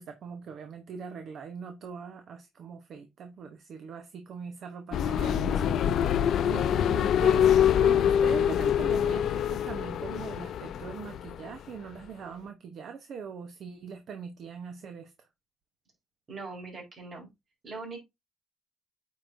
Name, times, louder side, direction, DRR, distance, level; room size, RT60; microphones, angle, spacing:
voice 1, 0.0-6.1 6.4-15.1, right 6 dB, 65° right, 0.9 m, -41 dB
sound 1, 4.9-11.5, left 9 dB, 70° left, 0.4 m, -25 dB
voice 2, 16.3-17.3 17.6-18.0, right 3 dB, 50° right, 4.0 m, -41 dB
8.5 x 4.8 x 2.6 m
cardioid pair, 90°, 0 cm